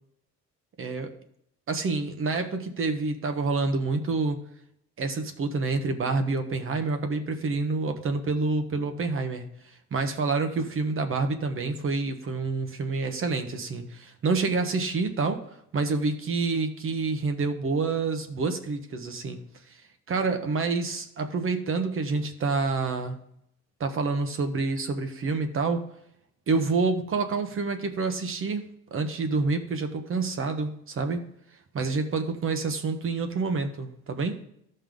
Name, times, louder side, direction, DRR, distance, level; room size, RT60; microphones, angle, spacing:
voice 1, 0.8-1.1 1.7-4.4 5.0-9.5 9.9-15.4 15.7-19.4 19.7-19.8 20.1-23.2 23.8-25.8 26.5-31.2 31.7-34.4, right 3 dB, 45° right, 7 dB, 1.1 m, -28 dB
13.5 x 5.5 x 3.8 m, 0.74 s
cardioid pair, 130°, 29 cm